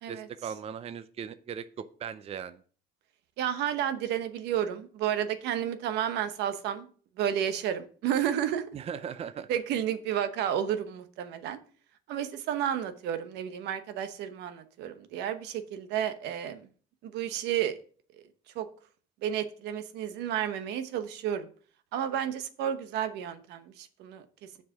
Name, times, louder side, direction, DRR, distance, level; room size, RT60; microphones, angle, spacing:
voice 1, 0.1-2.6 8.7-9.5, right 7 dB, 35° right, 0.5 m, -38 dB
voice 2, 3.4-6.9 7.2-8.7 9.5-11.6 12.1-16.7 17.0-17.7 18.5-18.7 19.2-21.5 21.9-24.2, right 10 dB, 85° right, 0.9 m, -31 dB
7.3 x 4.7 x 6.0 m
cardioid pair, 110°, 17 cm